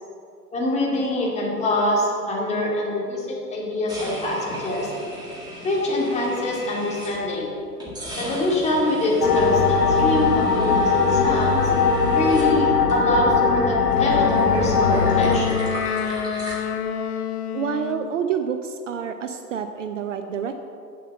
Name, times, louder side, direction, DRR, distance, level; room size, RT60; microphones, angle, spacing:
voice 1, 0.5-4.9 5.6-7.5 8.2-11.7 12.1-15.6, left 1 dB, 15° left, -4 dB, 2.3 m, -24 dB
sound 1, 3.9-7.4 7.8-13.4 13.6-16.6, right 1 dB, 10° right, 1.9 m, -38 dB
sound 2, 9.2-15.4, left 4 dB, 70° left, 1.1 m, -20 dB
Wind instrument woodwind instrument, 13.9-18.1, left 8 dB, 40° left, 0.6 m, -28 dB
voice 2, 17.5-20.6, right 7 dB, 50° right, 8 dB, 0.6 m, -28 dB
8.2 x 7.4 x 6.7 m, 2.5 s
figure-of-eight pair, 110°, 48 cm